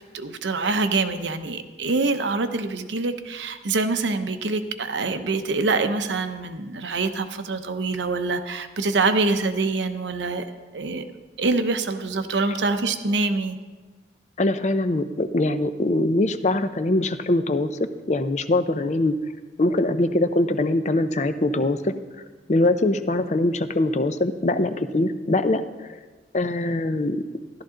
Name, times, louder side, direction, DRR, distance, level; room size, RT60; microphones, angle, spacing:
voice 1, 0.1-10.4 10.7-11.0 11.4-13.6, right 3 dB, 80° right, 8 dB, 0.8 m, -25 dB
voice 2, 14.4-19.1 19.6-22.0 22.5-25.6 26.3-27.2, left 2 dB, 40° left, 10 dB, 0.5 m, -22 dB
13.5 x 12.0 x 3.8 m, 1.3 s
head